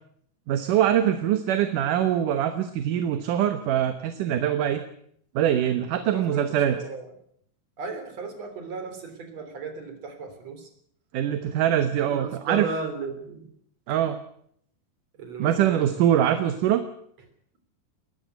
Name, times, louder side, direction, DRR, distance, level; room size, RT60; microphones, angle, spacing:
voice 1, 0.5-4.8 5.3-6.8 11.1-12.7 13.9-14.2 15.4-16.8, right 10 dB, 65° right, 9 dB, 2.5 m, -23 dB
voice 2, 6.1-7.1 7.8-10.7 12.1-13.5 15.2-15.9, right 4 dB, 45° right, 7 dB, 4.5 m, -35 dB
21.0 x 14.0 x 9.4 m, 0.68 s
omnidirectional pair, 4.3 m